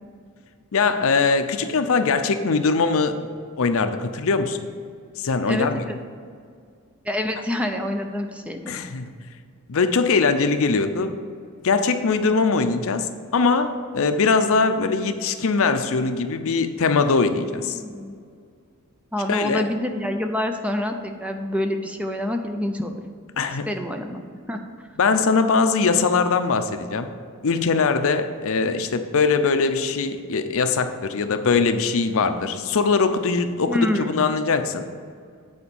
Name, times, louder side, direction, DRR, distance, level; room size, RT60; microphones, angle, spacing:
voice 1, 0.7-3.2 3.6-4.7 5.2-5.8 8.7-9.1 9.7-11.1 11.6-17.8 19.3-19.6 23.4-23.7 25.0-27.1 27.4-34.9, left 4 dB, 65° left, 9 dB, 0.6 m, -21 dB
voice 2, 5.5-6.0 7.0-8.6 17.6-18.2 19.1-23.0 23.7-24.2 24.5-24.6 33.7-34.3, left 1 dB, 5° right, 5 dB, 0.5 m, -27 dB
8.6 x 4.4 x 7.0 m, 2.1 s
head